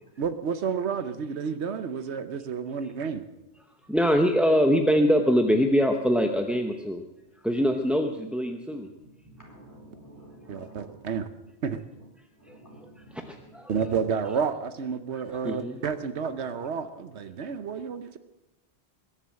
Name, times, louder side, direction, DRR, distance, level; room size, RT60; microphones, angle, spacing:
voice 1, 0.2-3.3 10.5-11.3 11.6-11.8 13.7-18.2, right 6 dB, 80° right, 11 dB, 1.1 m, -30 dB
voice 2, 3.9-7.0 7.4-8.9 12.5-12.6 12.8-13.2 13.5-13.8 15.4-15.8, equal, ahead, 4 dB, 0.7 m, -23 dB
voice 3, 9.0-10.9 12.4-13.5, right 1 dB, 15° left, -2 dB, 4.3 m, -50 dB
21.5 x 7.3 x 7.5 m, 0.97 s
omnidirectional pair, 1.1 m